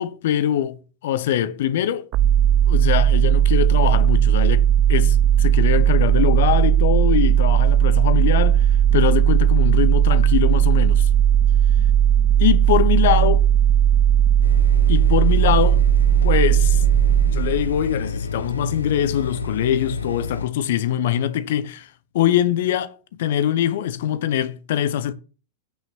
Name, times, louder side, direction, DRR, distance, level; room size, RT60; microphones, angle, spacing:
voice 1, 0.0-2.1 2.7-11.1 12.4-13.5 14.9-15.8 16.2-16.8 17.2-25.1, left 11 dB, 55° left, 0.8 m, -23 dB
sound 1, 2.1-17.9, right 10 dB, 40° right, 0.5 m, -17 dB
sound 2, 14.4-20.5, left 4 dB, 80° left, 1.0 m, -29 dB
9.1 x 6.0 x 7.0 m
figure-of-eight pair, 90°, 0 cm